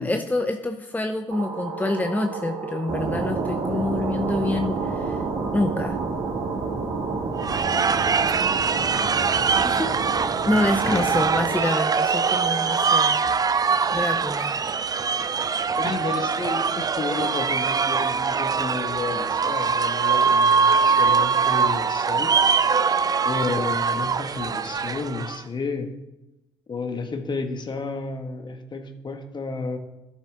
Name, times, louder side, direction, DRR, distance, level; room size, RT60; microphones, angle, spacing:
voice 1, 0.0-5.2 5.5-6.0 9.6-9.9 10.5-14.6, left 2 dB, 15° left, 6 dB, 0.8 m, -27 dB
sound 1, 1.3-12.8, right 5 dB, 80° right, 1.5 m, -33 dB
sound 2, 2.9-11.5, right 4 dB, 60° right, 2.4 m, -30 dB
sound 3, 7.4-25.4, right 5 dB, 35° right, 0.5 m, -23 dB
voice 2, 10.8-11.1 15.7-22.3 23.2-25.9 26.7-29.8, left 4 dB, 40° left, 6 dB, 1.4 m, -31 dB
13.0 x 6.5 x 3.9 m, 0.98 s
hypercardioid pair, 50°, 12 cm